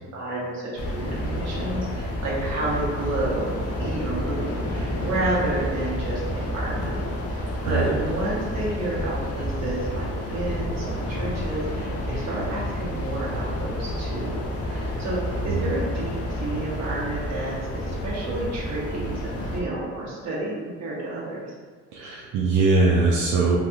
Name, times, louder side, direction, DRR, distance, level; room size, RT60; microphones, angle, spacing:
voice 1, 0.1-7.0 7.3-21.4, right 2 dB, 60° right, -6 dB, 1.2 m, -30 dB
sound 1, 0.8-19.6, left 1 dB, 50° left, 0.6 m, -30 dB
voice 2, 7.6-7.9 15.5-15.6 21.9-23.6, right 3 dB, 85° right, -4 dB, 0.5 m, -21 dB
3.3 x 2.6 x 2.4 m, 1.5 s
cardioid pair, 90°, 30 cm